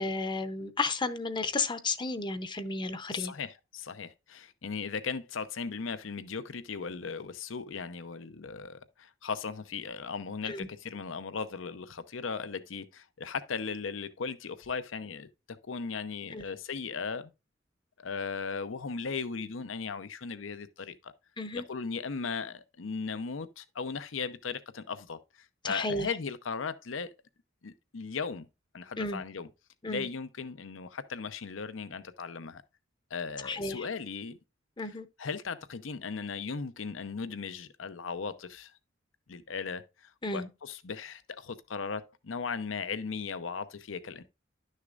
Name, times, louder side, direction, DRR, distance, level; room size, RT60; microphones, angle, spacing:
voice 1, 0.0-3.3 10.5-10.7 16.3-16.4 21.4-21.6 25.6-26.2 29.0-29.2 29.8-30.1 33.4-33.9 34.8-35.1 40.2-40.5, left 3 dB, 25° left, 0.7 m, -33 dB
voice 2, 3.1-15.3 15.6-17.3 18.0-21.1 21.5-25.2 25.7-27.1 27.6-28.5 28.7-29.5 29.8-32.6 33.1-34.4 35.2-38.7 39.3-44.2, left 5 dB, 80° left, 0.7 m, -37 dB
11.5 x 6.5 x 2.5 m
head